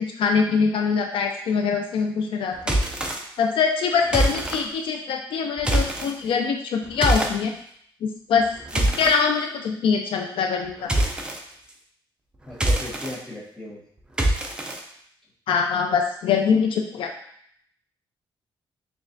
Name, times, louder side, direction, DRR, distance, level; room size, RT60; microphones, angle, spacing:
voice 1, 0.0-2.8 3.4-7.5 8.0-8.5 8.7-10.9 15.5-17.1, left 5 dB, 70° left, 3 dB, 0.4 m, -23 dB
sound 1, 2.6-3.2 4.1-4.6 5.6-6.1 7.0-7.3 8.4-9.1 10.9-11.4 12.5-13.1 14.2-14.8, right 1 dB, 10° right, 0.4 m, -23 dB
voice 2, 12.4-13.8, left 1 dB, 5° left, -6 dB, 1.0 m, -36 dB
6.1 x 2.3 x 2.6 m, 0.67 s
wide cardioid pair, 170°, 9 cm